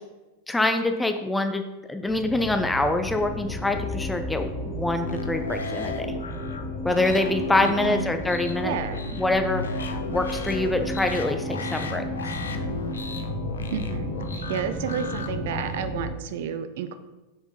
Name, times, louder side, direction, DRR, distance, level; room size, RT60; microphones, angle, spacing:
voice 1, 0.5-1.6 1.9-6.2 6.8-8.7 9.2-12.0, left 2 dB, 5° left, 7 dB, 0.5 m, -25 dB
sound 1, 2.1-16.1, equal, 15° right, 2.3 m, -34 dB
sound 2, 3.5-11.0, left 4 dB, 35° left, 1.2 m, -41 dB
sound 3, 5.1-15.9, left 3 dB, 70° left, 0.5 m, -35 dB
voice 2, 7.6-8.1 8.6-9.2 13.7-17.0, right 8 dB, 55° right, 10 dB, 0.5 m, -31 dB
6.5 x 4.8 x 3.8 m, 1.1 s
figure-of-eight pair, 90°, 0 cm